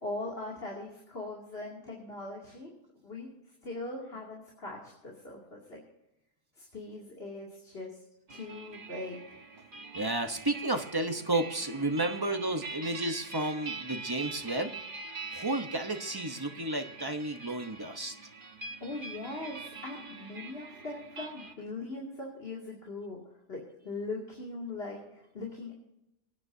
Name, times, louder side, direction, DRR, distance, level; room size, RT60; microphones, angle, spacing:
voice 1, 0.0-2.7 3.0-3.3 3.6-5.8 6.6-8.0 8.3-9.4 18.8-25.7, left 2 dB, 50° left, -3 dB, 2.9 m, -40 dB
sound 1, 8.3-21.5, right 4 dB, 45° right, 1.2 m, -44 dB
voice 2, 9.9-14.7 15.3-18.2, right 2 dB, 20° right, 6 dB, 0.9 m, -32 dB
25.0 x 9.7 x 2.7 m, 0.87 s
omnidirectional pair, 1.3 m